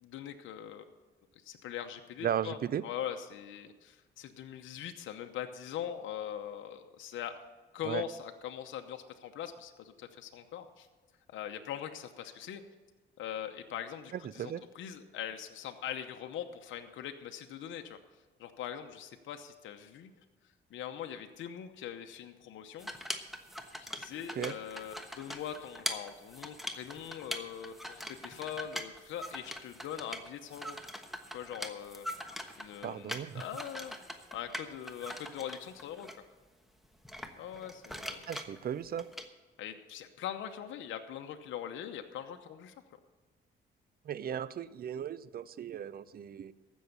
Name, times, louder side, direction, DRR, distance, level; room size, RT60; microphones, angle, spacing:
voice 1, 0.0-0.8 1.4-2.6 2.8-7.3 7.7-10.9 11.3-12.6 13.2-18.0 18.4-20.1 20.7-22.9 23.8-30.8 31.3-32.1 32.6-34.0 34.3-36.1 37.4-38.3 39.6-42.7, left 9 dB, 80° left, 6 dB, 0.9 m, -42 dB
voice 2, 2.2-2.8 7.8-8.0 14.1-14.6 24.4-24.5 32.8-33.4 38.3-39.1 44.1-46.5, right 9 dB, 50° right, 17 dB, 0.6 m, -36 dB
sound 1, 22.8-36.1 37.1-39.3, equal, ahead, 1.1 m, -42 dB
15.0 x 6.3 x 7.0 m, 1.3 s
cardioid pair, 90°, 20 cm